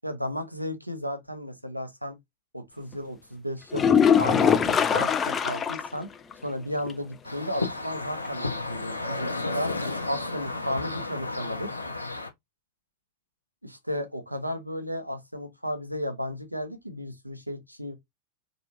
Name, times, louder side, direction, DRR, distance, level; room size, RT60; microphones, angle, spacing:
voice 1, 0.0-2.2 2.5-3.9 4.2-6.1 6.4-11.7 13.6-17.9, equal, 90° right, 0.8 m, -34 dB
sound 1, 3.7-6.0 6.3-6.4 6.9-7.0 10.7-10.8, left 7 dB, 20° left, 0.4 m, -22 dB
sound 2, 7.2-12.3, left 2 dB, 85° left, 0.7 m, -32 dB
4.2 x 2.9 x 2.8 m
figure-of-eight pair, 90°, 0 cm